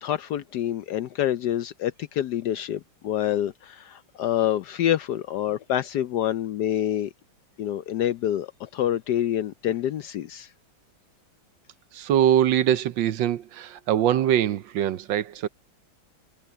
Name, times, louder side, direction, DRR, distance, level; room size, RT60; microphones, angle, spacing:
voice 1, 0.0-7.1 7.6-10.5, left 11 dB, 70° left, 1.0 m, -27 dB
voice 2, 11.9-15.5, right 11 dB, 75° right, 1.4 m, -23 dB
omnidirectional pair, 2.2 m